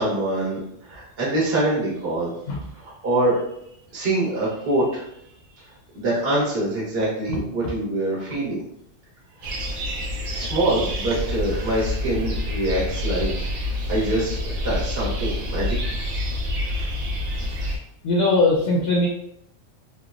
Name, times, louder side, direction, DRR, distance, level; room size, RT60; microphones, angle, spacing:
voice 1, 0.0-2.3 2.7-3.4 3.9-5.1 5.6-5.7 5.9-8.6 9.4-9.6 10.3-13.3 13.6-16.1 16.8-16.9, right 1 dB, 55° right, -7 dB, 1.2 m, -25 dB
sound 1, 9.4-17.8, left 1 dB, 70° right, 0.9 m, -27 dB
voice 2, 18.0-19.1, left 2 dB, 65° left, -2 dB, 0.7 m, -19 dB
3.3 x 2.1 x 2.3 m, 0.74 s
omnidirectional pair, 1.3 m